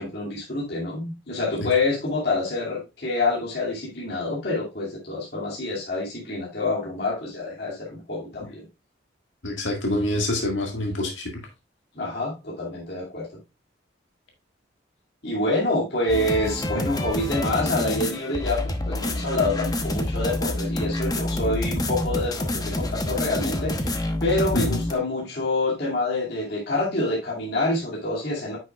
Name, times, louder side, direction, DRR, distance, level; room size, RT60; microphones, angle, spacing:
voice 1, 0.0-8.6 11.9-13.3 15.2-28.6, left 2 dB, 55° left, -5 dB, 2.5 m, -27 dB
voice 2, 9.4-11.3 16.7-16.9 24.5-24.8, left 1 dB, 90° left, 1 dB, 1.9 m, -26 dB
sound 1, 16.1-24.9, left 1 dB, 20° left, 0.9 m, -27 dB
9.5 x 6.3 x 2.4 m, 0.25 s
head